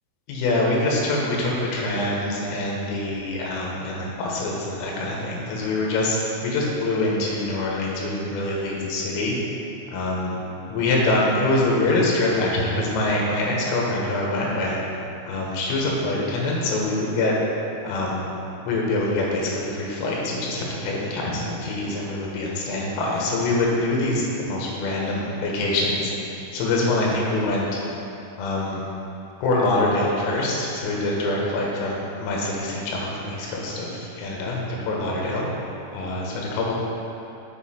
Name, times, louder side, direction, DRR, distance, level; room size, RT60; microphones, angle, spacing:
voice 1, 0.3-9.4 9.9-10.4 10.7-14.8 15.2-17.3 17.8-18.3 18.6-26.1 26.5-27.7 28.4-28.8 29.4-35.4 35.9-36.7, left 2 dB, 85° left, -3 dB, 3.8 m, -24 dB
7.1 x 6.6 x 4.3 m, 2.8 s
omnidirectional pair, 5.8 m